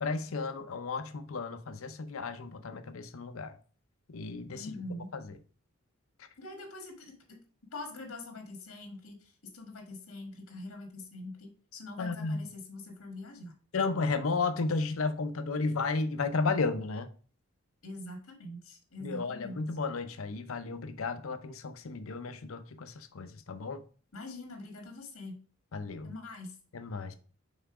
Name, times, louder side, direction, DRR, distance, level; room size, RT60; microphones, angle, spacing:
voice 1, 0.0-3.5 4.1-4.8 5.1-5.3 12.0-12.5 13.7-17.1 19.0-23.8 25.7-26.1 26.7-27.1, left 3 dB, 70° left, 0.7 m, -33 dB
voice 2, 4.5-5.1 6.4-7.4 7.7-13.5 17.8-19.6 24.1-25.3 26.0-26.5, left 2 dB, 85° left, 1.6 m, -44 dB
5.6 x 4.0 x 4.8 m
head